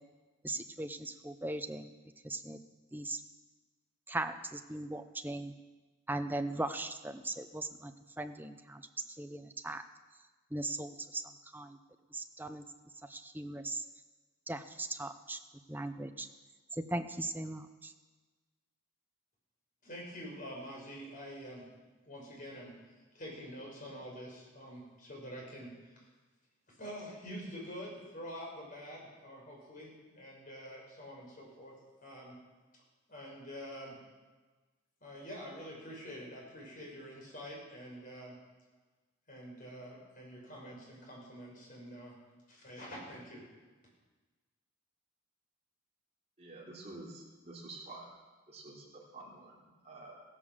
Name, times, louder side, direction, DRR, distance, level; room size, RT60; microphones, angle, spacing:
voice 1, 0.4-1.9 2.2-2.6 2.9-3.2 4.1-5.5 6.1-8.8 9.2-9.8 10.5-11.2 11.5-11.8 12.1-12.6 13.1-13.8 14.5-15.4 15.7-16.3 16.7-17.9, right 2 dB, 10° right, 7 dB, 0.7 m, -38 dB
voice 2, 19.8-21.6 22.1-22.7 23.1-25.7 26.8-31.7 32.0-32.4 33.1-34.0 35.0-38.4 39.3-42.1 42.5-43.4, equal, 40° left, -3 dB, 6.0 m, -46 dB
voice 3, 46.4-48.1 48.5-50.2, right 2 dB, 30° right, -4 dB, 3.8 m, -49 dB
16.0 x 11.5 x 7.4 m, 1.3 s
head